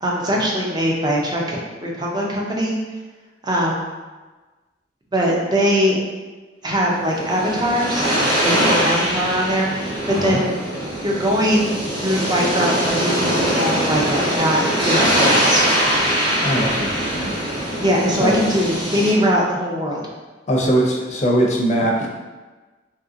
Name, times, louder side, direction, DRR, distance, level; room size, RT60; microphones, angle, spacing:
voice 1, 0.0-2.8 3.4-3.9 5.1-6.0 6.6-8.1 8.4-10.5 11.0-11.7 12.0-15.6 17.8-20.0, equal, 25° right, -2 dB, 0.5 m, -21 dB
sound 1, 6.9-19.1, equal, 75° right, 1.4 m, -22 dB
voice 2, 10.1-10.4 16.4-17.3 18.2-18.3 20.5-22.1, right 1 dB, 40° left, -2 dB, 0.5 m, -20 dB
2.8 x 2.6 x 2.5 m, 1.3 s
head